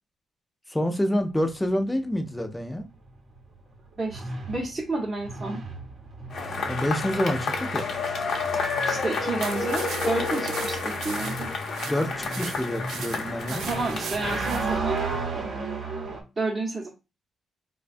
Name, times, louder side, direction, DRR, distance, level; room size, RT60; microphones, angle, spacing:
voice 1, 0.7-2.9 6.6-7.9 11.8-13.6, equal, 10° left, 0.4 m, -27 dB
sound 1, 1.2-16.2, right 3 dB, 50° right, 0.8 m, -35 dB
voice 2, 4.0-5.6 8.8-11.5 13.5-15.0 16.4-16.9, right 3 dB, 25° right, 0.8 m, -30 dB
Cheering / Applause / Crowd, 6.3-15.0, left 4 dB, 55° left, 0.6 m, -30 dB
sound 2, 9.4-14.7, right 6 dB, 85° right, 0.4 m, -39 dB
4.0 x 2.2 x 2.5 m
cardioid pair, 130°, 0 cm